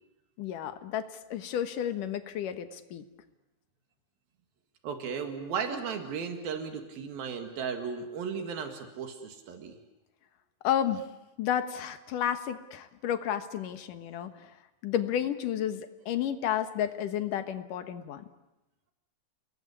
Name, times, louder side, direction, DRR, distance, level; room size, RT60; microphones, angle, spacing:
voice 1, 0.4-3.0 10.6-11.0 11.4-14.5 14.8-18.2, left 10 dB, 70° left, 10 dB, 2.8 m, -31 dB
voice 2, 4.8-9.8, right 6 dB, 80° right, 6 dB, 3.8 m, -35 dB
30.0 x 20.5 x 9.8 m, 0.96 s
omnidirectional pair, 4.1 m